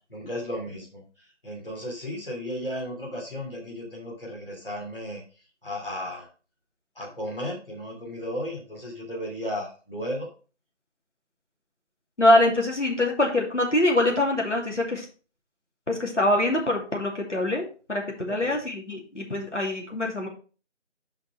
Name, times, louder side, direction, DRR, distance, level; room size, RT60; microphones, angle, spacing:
voice 1, 0.1-5.2 5.6-6.3 6.9-10.3 18.4-18.6, equal, 50° left, -2 dB, 3.0 m, -34 dB
voice 2, 12.2-15.1 15.9-20.3, left 1 dB, 75° left, 0 dB, 2.6 m, -24 dB
6.8 x 5.2 x 4.6 m, 0.36 s
figure-of-eight pair, 175°, 36 cm